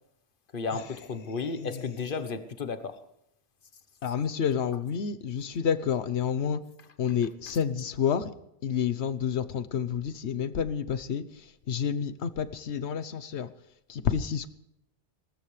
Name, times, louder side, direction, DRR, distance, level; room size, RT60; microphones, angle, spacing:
voice 1, 0.5-3.0 6.8-6.9, left 4 dB, 50° left, 11 dB, 1.3 m, -33 dB
voice 2, 4.0-6.6 7.0-8.3 8.6-11.2 11.7-13.5 13.9-14.5, left 7 dB, 75° left, 13 dB, 1.1 m, -29 dB
19.5 x 19.0 x 3.3 m, 0.80 s
omnidirectional pair, 1.2 m